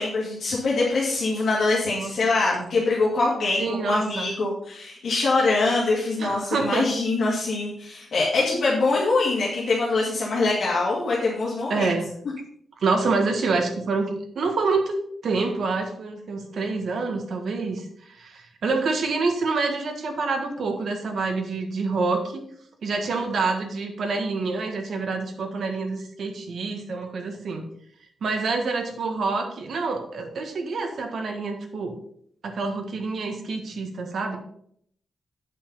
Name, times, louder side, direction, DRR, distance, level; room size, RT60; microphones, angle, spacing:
voice 1, 0.0-11.9, left 3 dB, 55° left, -6 dB, 2.3 m, -24 dB
voice 2, 3.6-4.4 6.2-6.9 11.7-12.1 12.8-15.0 15.2-22.4 22.8-27.6 28.2-31.9 32.4-34.4, right 4 dB, 55° right, 4 dB, 1.5 m, -27 dB
8.4 x 5.5 x 5.5 m, 0.67 s
wide cardioid pair, 170°, 0 cm